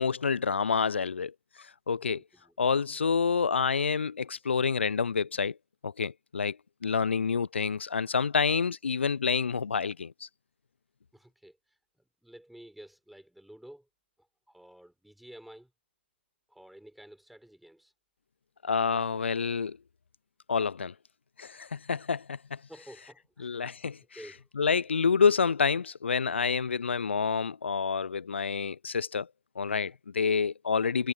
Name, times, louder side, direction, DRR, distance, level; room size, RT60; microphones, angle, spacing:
voice 1, 0.0-1.3 1.9-2.2 2.6-5.6 5.8-6.6 6.8-10.3 18.6-19.8 20.5-20.9 21.4-22.6 23.4-24.0 24.6-29.3 29.6-31.1, left 5 dB, 75° left, 0.5 m, -28 dB
voice 2, 2.0-2.6 11.1-13.9 14.5-15.7 16.5-17.9 18.9-19.3 22.7-23.5 24.1-24.6, right 1 dB, ahead, 4.6 m, -51 dB
figure-of-eight pair, 120°, 6 cm